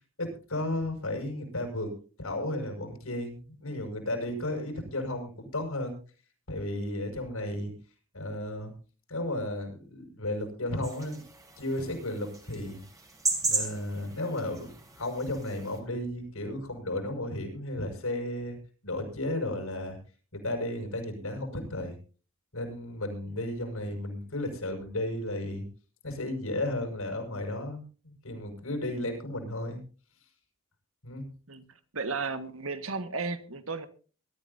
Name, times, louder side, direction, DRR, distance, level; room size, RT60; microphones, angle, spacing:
voice 1, 0.2-1.9 2.2-6.0 6.5-7.7 8.1-8.7 9.1-11.2 11.6-12.8 13.4-14.7 15.0-18.6 18.8-20.0 20.3-21.9 22.5-25.6 26.0-29.8 31.0-31.3, left 1 dB, 85° left, 3 dB, 6.1 m, -34 dB
sound 1, 10.8-15.8, right 3 dB, 15° right, 2.8 m, -35 dB
voice 2, 31.9-33.9, right 4 dB, 75° right, 9 dB, 1.6 m, -34 dB
22.5 x 13.5 x 2.7 m, 0.38 s
head